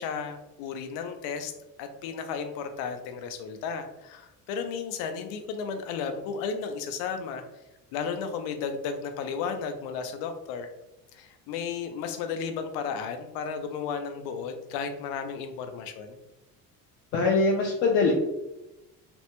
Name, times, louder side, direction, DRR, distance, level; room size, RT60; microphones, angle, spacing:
voice 1, 0.0-1.5 1.8-7.4 7.9-10.7 11.1-16.2, left 6 dB, 90° left, 7 dB, 0.5 m, -34 dB
voice 2, 17.1-18.1, left 3 dB, 45° left, -2 dB, 0.4 m, -22 dB
3.3 x 2.1 x 2.9 m, 0.95 s
cardioid pair, 170°, 35 cm